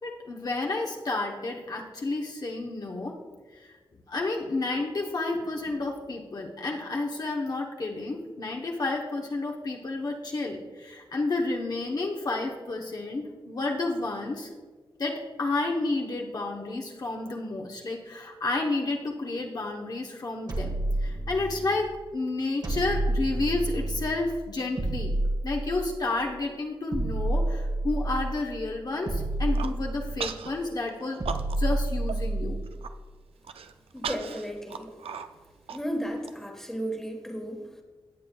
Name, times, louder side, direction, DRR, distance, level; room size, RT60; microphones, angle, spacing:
voice 1, 0.0-3.1 3.5-3.7 4.1-14.5 15.0-20.7 21.0-25.1 25.4-31.2 31.6-32.6, left 2 dB, 45° left, 0 dB, 0.9 m, -31 dB
sound 1, 20.5-21.8 22.6-24.3 24.8-26.2 26.9-28.5 29.1-30.5 31.2-32.8, right 1 dB, 45° right, 1.5 m, -29 dB
Human voice, 29.3-29.8 30.2-30.5 30.9-31.8 32.1-32.2 32.6-32.9 33.4-36.3, right 6 dB, 85° right, 0.5 m, -37 dB
voice 2, 33.9-35.1 35.7-37.8, equal, 5° left, 2 dB, 1.3 m, -34 dB
17.0 x 7.6 x 2.3 m, 1.4 s
wide cardioid pair, 140°, 9 cm